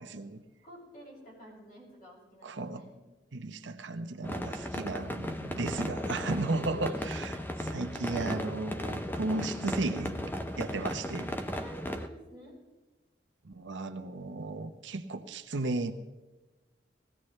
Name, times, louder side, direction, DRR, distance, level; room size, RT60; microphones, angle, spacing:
voice 1, 0.0-0.4 2.4-2.9 3.3-7.3 7.6-10.3 10.6-11.3 13.4-15.9, right 2 dB, 80° right, 8 dB, 0.9 m, -35 dB
voice 2, 0.6-3.0 6.5-7.0 11.5-12.6, equal, 50° left, -4 dB, 6.6 m, -49 dB
sound 1, 4.2-12.1, equal, 10° left, 0.6 m, -36 dB
20.0 x 16.0 x 3.3 m, 1.1 s
head